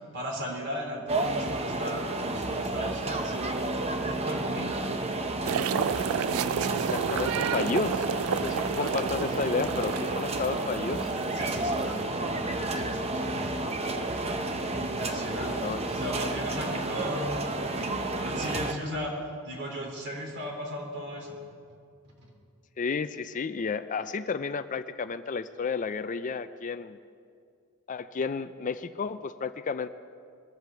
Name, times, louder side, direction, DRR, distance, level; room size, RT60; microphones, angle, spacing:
voice 1, 0.1-3.7 4.0-4.7 8.5-8.9 11.3-13.4 14.8-19.1 19.4-21.3 22.2-22.3, equal, 50° right, 0 dB, 3.3 m, -37 dB
sound 1, 1.1-18.7, right 2 dB, 30° right, 0.8 m, -31 dB
sound 2, 5.4-12.0, right 8 dB, 70° right, 0.3 m, -32 dB
voice 2, 6.8-11.1 15.4-15.8 22.8-27.0 27.9-29.9, left 5 dB, 35° left, 12 dB, 0.4 m, -32 dB
22.5 x 8.0 x 6.9 m, 2.3 s
head